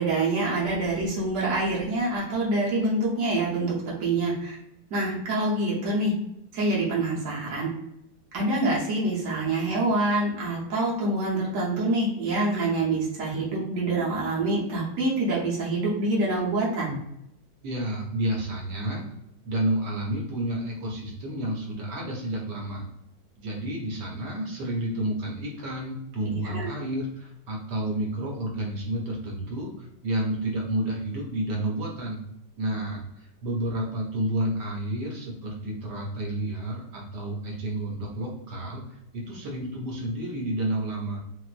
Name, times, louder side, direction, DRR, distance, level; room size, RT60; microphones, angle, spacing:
voice 1, 0.0-3.7 4.0-4.6 4.9-6.1 6.5-7.7 8.3-17.0 26.5-26.7, right 2 dB, 55° right, -5 dB, 1.3 m, -26 dB
voice 2, 17.6-19.1 19.4-22.8 23.4-32.2 32.6-41.2, right 1 dB, 75° right, -2 dB, 1.4 m, -30 dB
4.2 x 2.0 x 2.4 m, 0.79 s
omnidirectional pair, 1.9 m